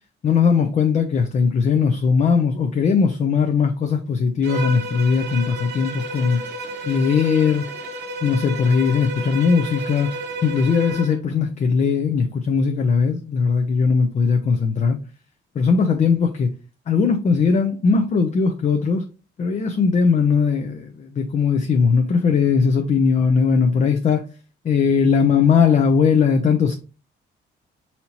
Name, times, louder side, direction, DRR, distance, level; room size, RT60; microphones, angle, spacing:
voice 1, 0.2-6.4 6.8-7.6 8.2-10.1 10.4-15.0 15.6-16.5 16.9-19.1 19.4-24.2 24.6-26.8, left 5 dB, 35° left, 0.5 m, -19 dB
Bowed string instrument, 4.4-11.2, right 2 dB, 60° right, 0.9 m, -32 dB
4.2 x 2.7 x 2.9 m
cardioid pair, 90°, 20 cm